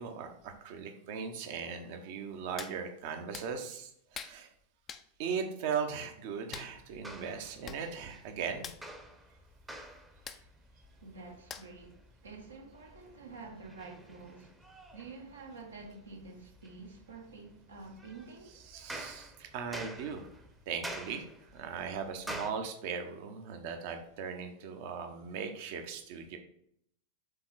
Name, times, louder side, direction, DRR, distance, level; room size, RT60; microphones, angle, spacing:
voice 1, 0.0-4.5 5.2-8.7 18.7-20.3 20.7-26.4, right 6 dB, 50° right, 0.9 m, -38 dB
Hands, 2.6-2.8 3.3-3.5 4.1-4.4 4.9-5.1 6.5-6.7 7.4-7.5 7.6-7.8 8.1-8.3 8.6-8.8 10.3-10.4 11.5-11.8 12.3-12.4, left 7 dB, 25° left, 0.4 m, -44 dB
sound 1, 6.7-22.5, right 1 dB, 5° right, 0.8 m, -49 dB
voice 2, 11.0-14.6 14.9-18.6, right 3 dB, 70° right, 1.2 m, -49 dB
6.8 x 3.8 x 4.1 m
figure-of-eight pair, 90°, 0 cm